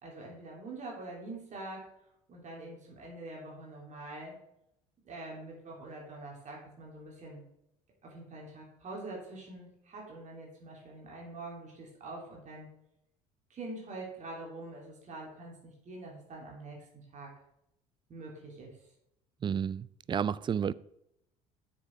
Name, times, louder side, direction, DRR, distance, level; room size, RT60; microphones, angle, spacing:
voice 1, 0.0-1.9 2.3-4.3 5.0-7.4 8.0-12.7 13.5-17.3 18.1-18.9, right 2 dB, 45° right, 3.2 m, -45 dB
voice 2, 19.4-20.7, right 8 dB, 25° right, 0.3 m, -31 dB
7.3 x 6.6 x 4.6 m
hypercardioid pair, 75°, 18 cm